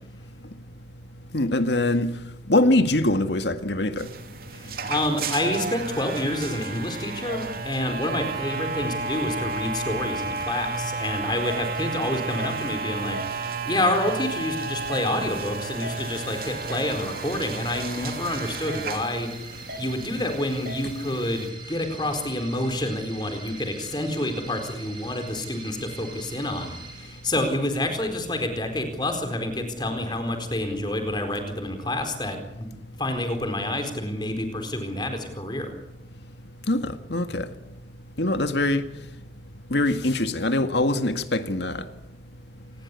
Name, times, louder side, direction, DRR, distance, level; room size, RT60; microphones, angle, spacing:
voice 1, 1.3-2.1 2.5-4.1 36.7-37.5 38.2-38.8 39.7-41.8, left 2 dB, 80° left, 1.9 m, -23 dB
sound 1, 4.0-21.5, right 4 dB, 55° right, 2.9 m, -32 dB
voice 2, 4.5-19.3 19.8-32.7 33.0-35.7, left 1 dB, 25° left, 4.3 m, -28 dB
sound 2, 15.8-27.8, right 3 dB, 25° right, 7.2 m, -44 dB
27.5 x 20.5 x 8.4 m
head